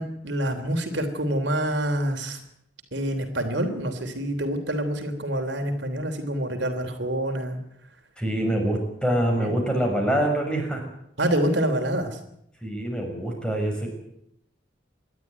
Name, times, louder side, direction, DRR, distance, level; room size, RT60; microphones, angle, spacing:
voice 1, 0.0-2.4 2.9-7.6 9.4-9.6 11.2-12.2, right 1 dB, 60° right, 6 dB, 3.2 m, -27 dB
voice 2, 8.2-10.8 12.6-13.9, right 1 dB, 5° left, 2 dB, 6.1 m, -25 dB
27.5 x 12.0 x 9.5 m, 0.76 s
head